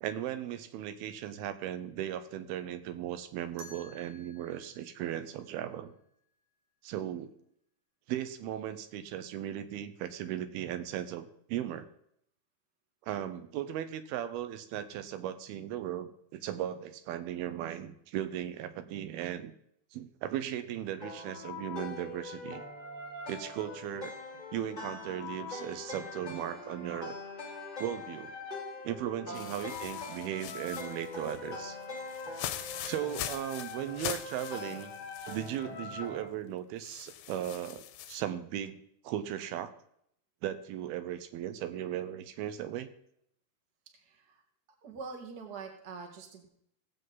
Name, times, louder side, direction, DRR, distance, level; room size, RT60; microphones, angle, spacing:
voice 1, 0.0-5.9 6.8-7.3 8.1-11.9 13.1-19.5 19.9-22.6 23.3-24.1 24.5-27.2 27.8-28.3 28.8-31.8 32.9-34.9 35.3-38.8 39.0-39.7 40.4-42.9, right 11 dB, 85° right, 11 dB, 2.7 m, -37 dB
sound 1, 3.6-6.5, left 2 dB, 60° right, 3.6 m, -55 dB
sound 2, 21.0-36.3, left 3 dB, 20° left, 1.2 m, -42 dB
voice 2, 29.2-29.6 43.9-44.4 44.8-46.4, right 5 dB, 40° right, 3 dB, 1.4 m, -45 dB
sound 3, 29.3-35.6 36.0-36.1 36.8-38.2, left 11 dB, 90° left, 2.6 m, -42 dB
17.5 x 7.8 x 3.9 m, 0.70 s
omnidirectional pair, 4.4 m